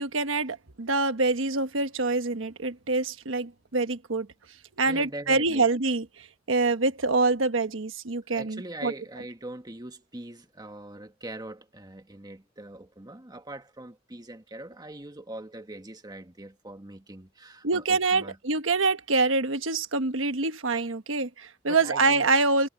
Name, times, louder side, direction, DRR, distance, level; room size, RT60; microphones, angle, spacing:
voice 1, 0.0-4.3 4.8-8.9 17.6-22.7, right 3 dB, 85° right, 1.2 m, -25 dB
voice 2, 4.8-5.7 8.3-18.4 21.6-22.3, right 1 dB, 20° right, 1.6 m, -42 dB
head